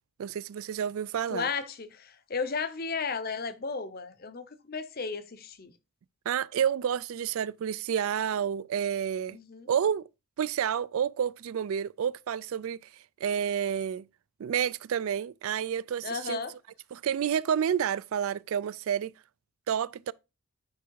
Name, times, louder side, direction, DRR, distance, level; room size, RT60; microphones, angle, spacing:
voice 1, 0.2-1.5 6.3-9.4 9.7-10.1 10.4-12.8 13.2-14.1 14.4-16.4 16.9-19.1 19.7-20.1, right 8 dB, 70° right, 0.3 m, -29 dB
voice 2, 1.3-5.7 9.3-9.7 16.0-16.5, left 5 dB, 45° left, 0.7 m, -34 dB
9.5 x 3.4 x 4.6 m
head